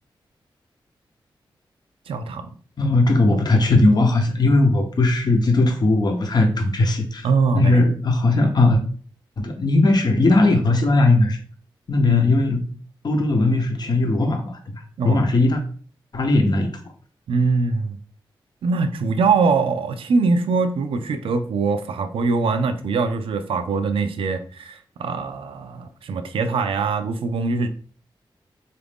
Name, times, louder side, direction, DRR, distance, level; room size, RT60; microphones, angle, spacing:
voice 1, 2.1-2.5 7.2-7.9 12.0-12.3 15.0-15.2 17.3-18.0 18.6-27.7, right 4 dB, 90° right, 8 dB, 0.4 m, -22 dB
voice 2, 2.8-7.3 7.5-8.8 9.4-11.4 11.9-12.6 13.0-15.6 16.1-16.7, left 2 dB, 50° left, 3 dB, 0.7 m, -18 dB
3.9 x 2.5 x 3.5 m, 0.43 s
cardioid pair, 65°, 9 cm